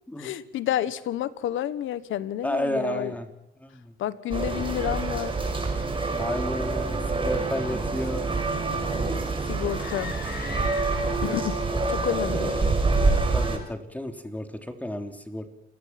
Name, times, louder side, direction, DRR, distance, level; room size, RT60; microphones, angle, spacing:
voice 1, 0.2-3.1 4.0-5.3 9.5-10.1 11.2-11.6 11.9-12.6, left 11 dB, 80° left, 15 dB, 1.4 m, -30 dB
voice 2, 2.4-3.3 3.6-3.9 6.2-8.4 11.0-11.5 13.3-15.5, left 1 dB, 5° left, 6 dB, 3.4 m, -32 dB
sound 1, 4.3-13.6, right 3 dB, 25° right, 6.0 m, -26 dB
sound 2, 9.7-11.4, left 6 dB, 55° left, 3.6 m, -40 dB
29.0 x 18.0 x 6.0 m, 0.82 s
cardioid pair, 90°, 20 cm